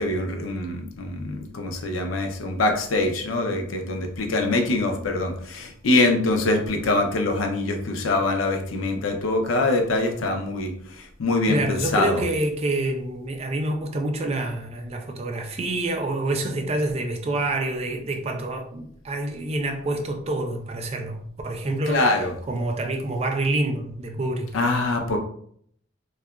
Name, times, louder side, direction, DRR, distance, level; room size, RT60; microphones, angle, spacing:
voice 1, 0.0-12.2 21.9-22.3 24.5-25.2, left 2 dB, 80° left, 0.5 m, -24 dB
voice 2, 11.5-22.2 22.5-24.5, right 2 dB, 30° right, 0.3 m, -27 dB
2.7 x 2.2 x 2.3 m
head